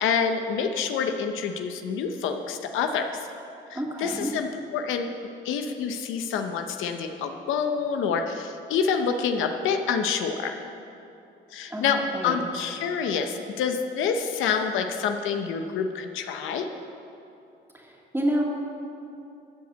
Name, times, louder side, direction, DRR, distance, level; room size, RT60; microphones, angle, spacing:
voice 1, 0.0-3.1 3.7-5.2 5.4-10.5 11.5-12.0 12.2-16.7, left 6 dB, 85° left, 6 dB, 0.7 m, -27 dB
voice 2, 3.7-4.3 11.7-11.8 12.1-12.4 17.7-18.4, equal, 10° right, -1 dB, 2.1 m, -28 dB
13.0 x 5.2 x 8.0 m, 2.7 s
cardioid pair, 90°, 20 cm